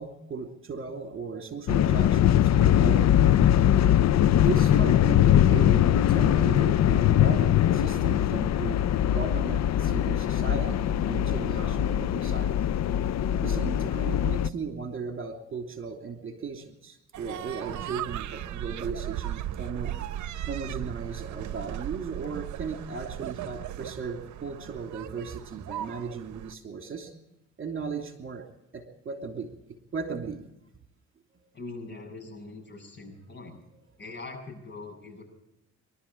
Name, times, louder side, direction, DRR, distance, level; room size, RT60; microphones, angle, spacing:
voice 1, 0.0-3.1 4.3-12.5 13.3-19.9 20.5-27.1 27.6-28.4 28.7-29.5 29.9-30.4 31.4-31.5, right 5 dB, 45° right, 5 dB, 3.0 m, -36 dB
sound 1, 1.7-14.5, left 11 dB, 60° left, 0.7 m, -22 dB
sound 2, 17.1-26.5, right 12 dB, 70° right, 0.9 m, -37 dB
voice 2, 31.5-33.6 34.0-35.2, left 3 dB, 35° left, 3 dB, 7.7 m, -42 dB
24.0 x 12.5 x 8.6 m, 0.89 s
cardioid pair, 90°, 30 cm